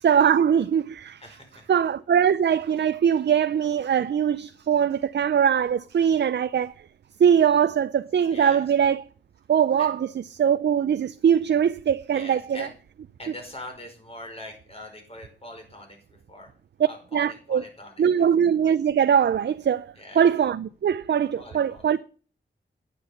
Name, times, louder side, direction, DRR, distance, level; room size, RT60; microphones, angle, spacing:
voice 1, 0.0-1.2 1.7-6.7 7.2-9.0 9.5-12.7 17.1-17.6 18.0-22.0, right 8 dB, 65° right, 0.5 m, -22 dB
voice 2, 1.2-1.7 8.3-8.6 9.8-10.0 12.1-12.7 13.2-16.0 16.3-16.5 16.9-18.2 20.0-20.3 21.4-21.9, left 1 dB, 30° left, 5.2 m, -42 dB
10.0 x 9.8 x 5.6 m
wide cardioid pair, 85°, 19 cm